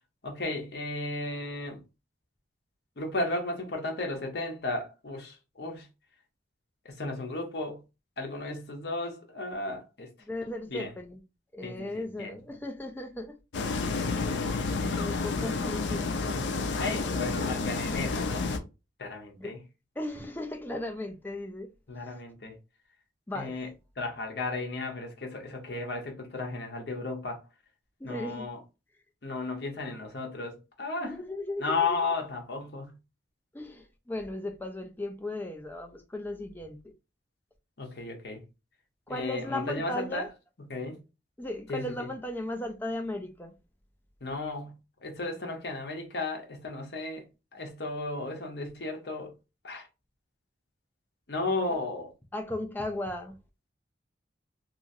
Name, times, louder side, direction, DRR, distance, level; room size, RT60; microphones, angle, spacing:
voice 1, 0.2-1.8 3.0-5.9 6.8-7.8 8.2-10.1 10.7-10.9 11.6-12.3 14.0-15.3 16.8-18.5 19.0-19.6 21.9-22.5 23.3-23.7 24.0-27.4 28.0-28.6 29.2-31.2 31.6-32.9 37.8-38.4 39.1-40.2 40.6-41.0 41.7-42.1 44.2-44.8 45.0-47.3 47.5-49.3 49.6-49.9 51.3-52.1, left 3 dB, 60° left, 0.8 m, -34 dB
voice 2, 10.2-11.2 11.5-13.4 14.9-16.0 19.4-19.5 20.0-21.7 23.3-23.6 28.0-28.5 31.0-32.0 33.5-36.8 39.1-40.3 41.4-43.5 52.3-53.3, left 1 dB, 10° left, 0.4 m, -36 dB
sound 1, 13.5-18.6, left 4 dB, 75° left, 0.5 m, -30 dB
2.9 x 2.5 x 2.6 m
head